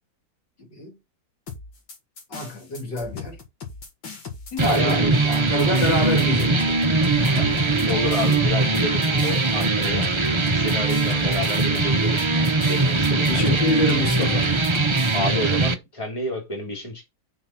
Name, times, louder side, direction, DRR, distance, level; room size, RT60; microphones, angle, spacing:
sound 1, 1.5-15.2, left 5 dB, 90° left, 3.1 m, -38 dB
voice 1, 2.3-3.4 4.5-6.8 7.2-7.6 13.3-14.6, left 1 dB, 65° left, 3.1 m, -26 dB
voice 2, 4.6-5.1 7.3-7.4 7.9-10.1 10.5-13.6 15.1-17.1, left 1 dB, 15° left, 2.7 m, -30 dB
sound 2, 4.6-15.7, right 3 dB, 50° right, 0.3 m, -21 dB
6.7 x 4.2 x 5.8 m
omnidirectional pair, 2.0 m